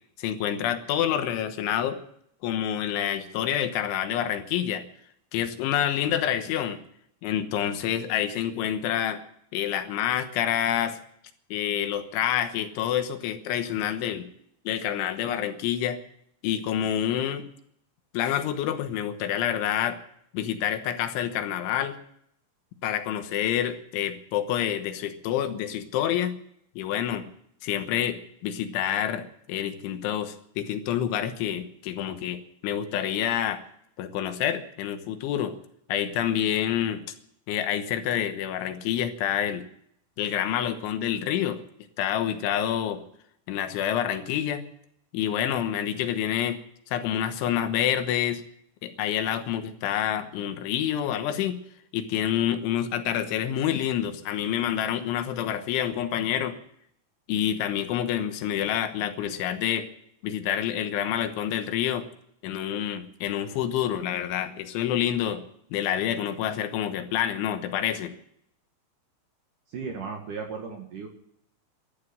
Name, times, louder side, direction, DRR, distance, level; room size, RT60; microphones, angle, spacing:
voice 1, 0.2-2.0 2.4-4.8 5.3-6.8 7.2-9.2 9.5-11.0 11.5-14.2 14.7-16.0 16.4-17.5 18.1-20.0 20.3-22.0 22.8-26.3 26.8-27.3 27.6-33.6 34.0-35.6 35.9-37.0 37.5-39.6 40.2-41.6 42.0-43.0 43.5-44.6 45.1-46.6 46.9-48.4 48.8-51.6 51.9-56.6 57.3-59.9 60.2-62.1 62.4-65.4 65.7-68.1, left 10 dB, 75° left, 8 dB, 3.5 m, -27 dB
voice 2, 69.7-71.1, right 5 dB, 55° right, 2 dB, 2.6 m, -35 dB
14.5 x 12.0 x 7.9 m, 0.68 s
omnidirectional pair, 5.6 m